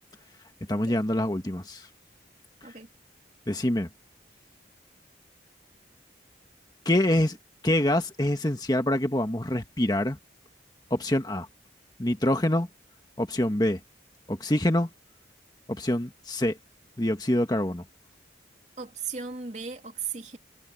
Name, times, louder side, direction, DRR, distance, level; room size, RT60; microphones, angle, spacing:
voice 1, 0.7-1.9 3.5-3.9 6.8-7.4 7.6-10.2 10.9-11.5 12.0-12.7 13.2-13.8 14.3-14.9 15.7-16.6 17.0-17.8, left 1 dB, 20° left, 1.5 m, -25 dB
voice 2, 18.8-20.4, right 6 dB, 40° right, 3.0 m, -36 dB
head